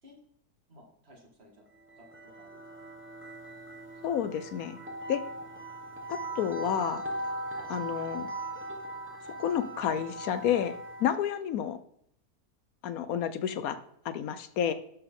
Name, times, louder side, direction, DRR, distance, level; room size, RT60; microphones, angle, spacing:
voice 1, 0.7-1.6 2.0-2.9 14.7-14.8, equal, 40° right, -1 dB, 2.3 m, -56 dB
sound 1, 1.8-11.3, right 1 dB, 10° right, 0.9 m, -39 dB
voice 2, 4.0-4.8 5.1-5.2 6.1-7.0 7.7-8.3 9.4-11.8 12.8-13.8 14.0-14.7, left 9 dB, 70° left, 12 dB, 1.0 m, -30 dB
12.0 x 4.5 x 3.7 m, 0.70 s
omnidirectional pair, 1.7 m